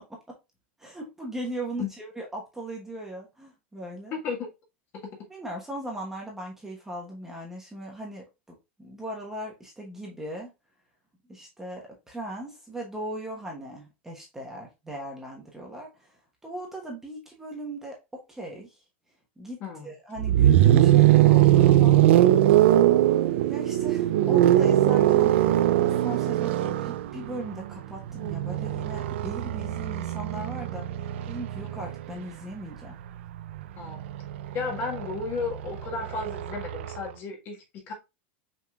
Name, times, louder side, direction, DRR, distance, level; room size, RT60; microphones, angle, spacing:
voice 1, 0.8-4.2 5.3-10.5 11.3-16.1 16.4-18.8 19.4-22.0 23.5-30.9 31.3-33.0, right 1 dB, 5° right, 1.1 m, -38 dB
voice 2, 4.1-4.5 19.6-19.9 33.8-34.0 34.5-37.9, left 4 dB, 35° left, 1.4 m, -33 dB
sound 1, 20.2-32.1 33.4-37.0, right 13 dB, 75° right, 0.4 m, -21 dB
5.8 x 3.7 x 2.3 m
supercardioid pair, 160°, 6 cm